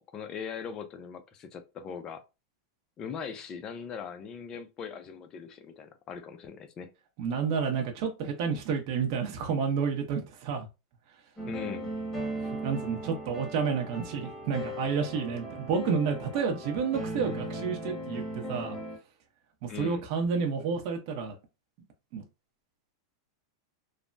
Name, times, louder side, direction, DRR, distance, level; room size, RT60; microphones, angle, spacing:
voice 1, 0.0-2.2 3.0-6.9 11.4-11.9 19.7-20.1, left 6 dB, 30° left, 0.5 m, -40 dB
voice 2, 7.2-10.7 12.6-18.8 19.6-21.3 22.1-22.2, right 6 dB, 50° right, 0.7 m, -30 dB
sound 1, 11.4-19.0, right 1 dB, 10° left, 1.3 m, -37 dB
3.2 x 2.1 x 2.5 m
supercardioid pair, 135°, 2 cm